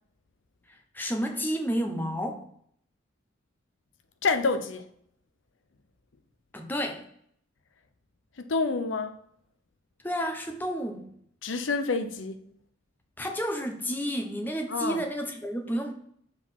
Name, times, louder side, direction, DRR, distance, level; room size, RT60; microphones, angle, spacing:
voice 1, 0.9-2.4 6.5-7.1 10.0-11.1 13.2-15.9, equal, 10° left, 0.8 m, -31 dB
voice 2, 4.2-4.9 8.4-9.1 11.4-12.4 14.7-15.0, left 4 dB, 70° left, 0.7 m, -28 dB
7.1 x 4.0 x 5.8 m
head